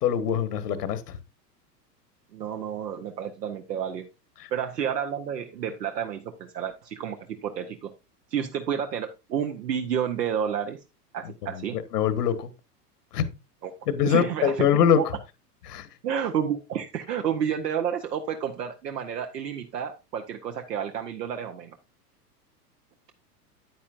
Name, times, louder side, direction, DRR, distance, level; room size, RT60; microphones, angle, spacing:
voice 1, 0.0-1.2 4.4-4.5 11.5-12.5 13.1-13.2 13.9-15.0 15.7-15.9, left 9 dB, 70° left, 1.4 m, -24 dB
voice 2, 2.3-4.1 4.5-7.9 8.3-10.8 11.1-11.8 13.6-13.7 14.0-15.1 16.0-21.8, right 8 dB, 75° right, 0.9 m, -30 dB
9.3 x 9.1 x 2.5 m
figure-of-eight pair, 95°, 49 cm